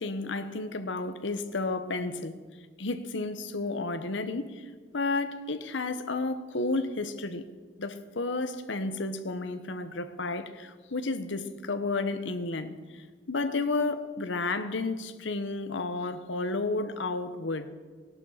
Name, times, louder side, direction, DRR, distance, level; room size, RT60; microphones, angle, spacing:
voice 1, 0.0-2.4 2.8-7.5 7.8-17.7, left 3 dB, 65° left, 1.0 m, -32 dB
18.5 x 11.5 x 5.7 m
head